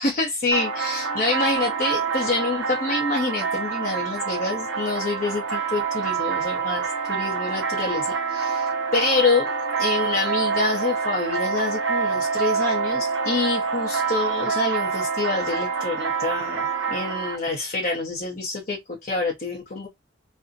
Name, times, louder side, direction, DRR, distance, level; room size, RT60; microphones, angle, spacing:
voice 1, 0.0-9.5 9.8-19.9, left 3 dB, 40° left, 0.6 m, -26 dB
sound 1, 0.5-17.4, right 5 dB, 60° right, 0.7 m, -26 dB
2.5 x 2.1 x 2.4 m
head